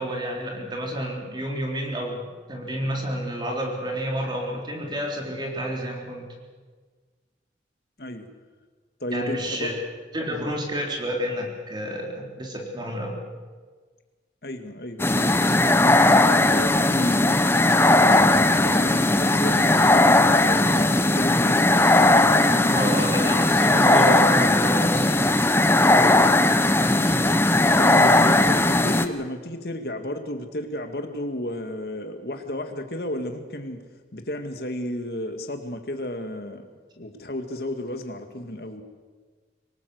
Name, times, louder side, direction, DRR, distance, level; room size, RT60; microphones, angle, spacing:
voice 1, 0.0-6.3 9.1-9.7 10.1-13.2 22.7-25.3, equal, 25° right, 0 dB, 3.8 m, -29 dB
voice 2, 9.0-9.7 10.3-10.5 14.4-15.5 15.8-21.8 27.8-33.8 34.1-38.8, left 1 dB, 60° left, 6 dB, 2.2 m, -33 dB
sound 1, 15.0-29.1, left 2 dB, 15° left, 0.9 m, -18 dB
24.5 x 18.5 x 8.0 m, 1.5 s
head